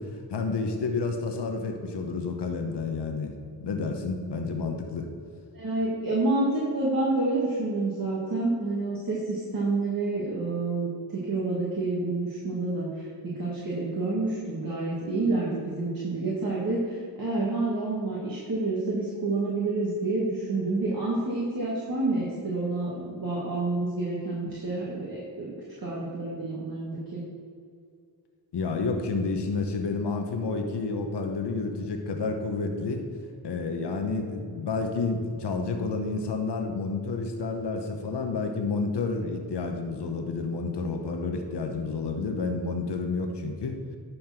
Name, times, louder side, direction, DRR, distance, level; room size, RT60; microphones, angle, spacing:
voice 1, 0.0-3.3 3.6-5.1 28.5-33.0 33.4-43.8, left 4 dB, 75° left, 4 dB, 1.0 m, -30 dB
voice 2, 5.5-27.2, right 2 dB, 55° right, -6 dB, 2.0 m, -28 dB
11.0 x 4.3 x 5.8 m, 2.3 s
cardioid pair, 50°, 42 cm